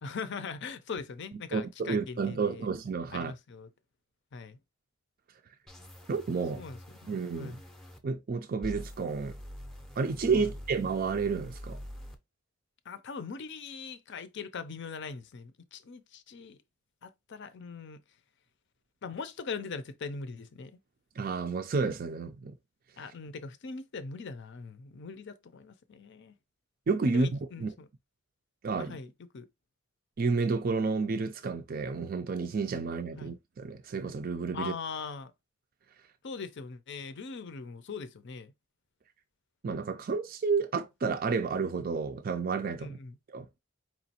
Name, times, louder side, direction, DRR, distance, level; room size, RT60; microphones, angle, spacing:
voice 1, 0.0-2.7 3.1-3.7 4.3-4.6 6.5-7.1 7.4-7.6 10.3-10.5 12.9-16.6 17.0-18.0 19.0-20.8 23.0-26.4 27.1-27.7 28.8-29.5 33.2-33.3 34.5-35.3 36.2-38.5 42.8-43.2, left 5 dB, 55° left, 0.5 m, -41 dB
voice 2, 1.5-3.3 6.1-6.6 7.1-7.6 8.0-9.4 10.0-11.8 21.2-22.6 26.9-27.3 27.6-27.7 28.6-29.0 30.2-34.7 39.6-43.0 43.3-43.6, right 4 dB, 45° right, 0.4 m, -30 dB
sound 1, 5.7-8.0 8.6-12.2, equal, ahead, 0.6 m, -45 dB
4.9 x 3.0 x 2.8 m
head